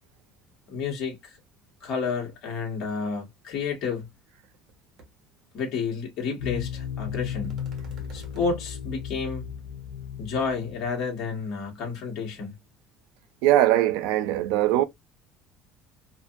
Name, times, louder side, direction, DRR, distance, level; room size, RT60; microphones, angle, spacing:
voice 1, 0.7-1.4 1.8-4.1 5.5-7.6 8.1-9.5 10.2-12.5, left 5 dB, 45° left, 1.1 m, -30 dB
sound 1, 4.0-4.1 4.4-4.7 5.0-5.1 7.4-8.5, right 1 dB, 40° right, 1.0 m, -45 dB
sound 2, 6.4-11.4, left 8 dB, 85° left, 0.5 m, -35 dB
voice 2, 13.4-14.8, right 14 dB, 90° right, 0.4 m, -21 dB
2.6 x 2.4 x 2.3 m
cardioid pair, 170°, 0 cm